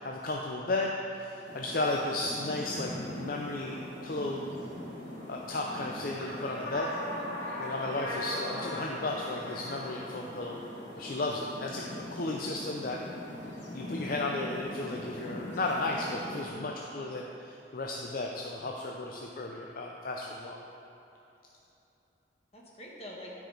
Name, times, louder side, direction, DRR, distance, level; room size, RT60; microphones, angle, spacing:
voice 1, 0.0-4.6 5.3-6.9 7.6-10.6 11.0-13.0 13.7-20.6, left 2 dB, 55° left, -1 dB, 0.5 m, -34 dB
sound 1, 1.4-16.5, left 1 dB, 80° left, 1.7 m, -40 dB
voice 2, 7.1-7.7 8.5-8.7 15.3-15.7 16.3-16.8 18.6-18.7 22.5-23.3, equal, 35° left, -3 dB, 1.4 m, -48 dB
13.0 x 4.9 x 3.9 m, 2.9 s
head